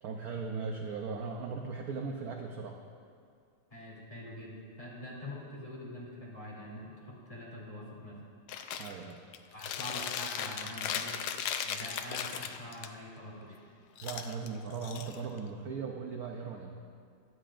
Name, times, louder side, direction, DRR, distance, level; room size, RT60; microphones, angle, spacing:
voice 1, 0.0-2.8 8.8-9.2 14.0-16.8, right 5 dB, 65° right, 2 dB, 0.9 m, -38 dB
voice 2, 3.7-8.2 9.5-11.2 11.6-13.6, left 1 dB, 15° left, -6 dB, 2.8 m, -45 dB
Chewing mastication, 8.5-8.9 9.3-12.9 14.0-15.5, left 8 dB, 75° left, 1.4 m, -37 dB
17.0 x 12.5 x 2.5 m, 2.2 s
omnidirectional pair, 2.4 m